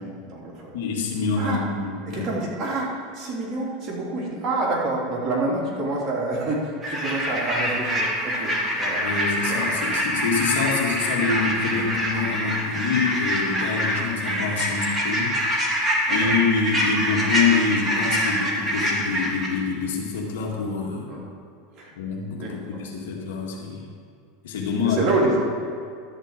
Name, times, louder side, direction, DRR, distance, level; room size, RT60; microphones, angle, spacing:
voice 1, 0.0-0.7 1.4-1.6 2.1-9.0 9.5-9.6 16.1-16.3 21.1-21.2 21.7-21.9 22.4-22.8 24.8-25.5, right 2 dB, 40° right, -4 dB, 3.1 m, -27 dB
voice 2, 0.7-2.3 9.0-15.3 16.1-21.1 22.0-23.8 24.4-25.0, left 5 dB, 85° left, -2 dB, 2.0 m, -26 dB
sound 1, 6.8-19.5, equal, 15° right, 2.5 m, -25 dB
12.5 x 4.5 x 8.1 m, 2.2 s
supercardioid pair, 115°, 0 cm